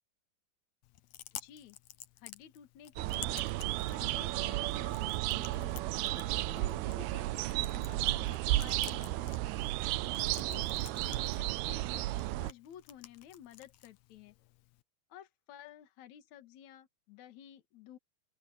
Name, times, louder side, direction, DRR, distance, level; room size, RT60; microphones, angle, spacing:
Chewing mastication, 0.8-14.8, left 13 dB, 80° left, 1.6 m, -52 dB
voice 1, 1.3-1.8 2.2-3.4 3.8-5.8 6.1-9.7 10.2-12.1 12.4-14.3 15.1-18.0, left 10 dB, 55° left, 2.7 m, -53 dB
sound 1, 3.0-12.5, right 17 dB, 85° right, 2.6 m, -33 dB
open air
omnidirectional pair, 4.5 m